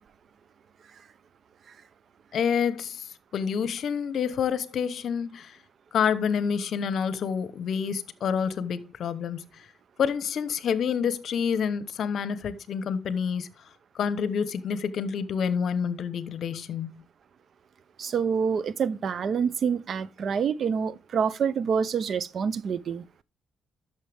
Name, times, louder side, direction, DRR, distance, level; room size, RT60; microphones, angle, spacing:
voice 1, 2.3-3.1 3.3-5.6 5.9-9.5 10.0-13.5 13.9-17.0, left 7 dB, 65° left, 0.9 m, -28 dB
voice 2, 18.0-23.0, right 6 dB, 55° right, 0.6 m, -27 dB
11.0 x 6.6 x 3.4 m
cardioid pair, 90°, 0 cm